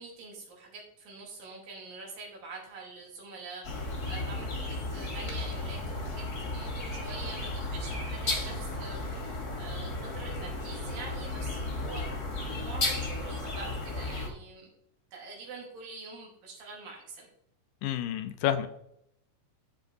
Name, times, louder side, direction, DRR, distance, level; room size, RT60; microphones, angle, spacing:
voice 1, 0.0-14.7 15.1-17.3, right 3 dB, 85° right, -2 dB, 4.2 m, -45 dB
sound 1, 3.6-14.3, left 2 dB, 35° left, 1.7 m, -34 dB
voice 2, 17.8-18.7, left 11 dB, 80° left, 10 dB, 2.3 m, -29 dB
13.0 x 4.8 x 4.0 m, 0.75 s
omnidirectional pair, 3.9 m